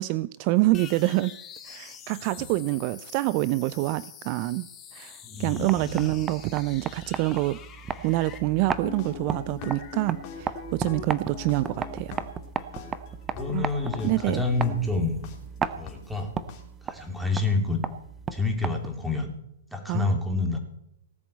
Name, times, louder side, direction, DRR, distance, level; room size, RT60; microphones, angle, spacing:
voice 1, 0.0-1.4 1.6-4.7 4.9-7.6 8.0-12.3 13.5-13.7 14.0-14.4 19.9-20.1, right 19 dB, 40° right, 18 dB, 0.4 m, -26 dB
sound 1, 0.7-8.4, left 8 dB, 25° left, 2.0 m, -46 dB
voice 2, 5.2-6.2 13.3-15.3 15.7-16.3 16.8-17.8 18.3-19.3 19.7-20.6, left 3 dB, ahead, 3 dB, 3.0 m, -28 dB
sound 2, 5.4-19.1, right 6 dB, 20° right, 0.9 m, -36 dB
sound 3, 8.6-15.4 15.9-16.0 16.5-16.6, left 8 dB, 40° left, 3.1 m, -41 dB
18.0 x 7.3 x 8.2 m, 0.76 s
hypercardioid pair, 125°, 0 cm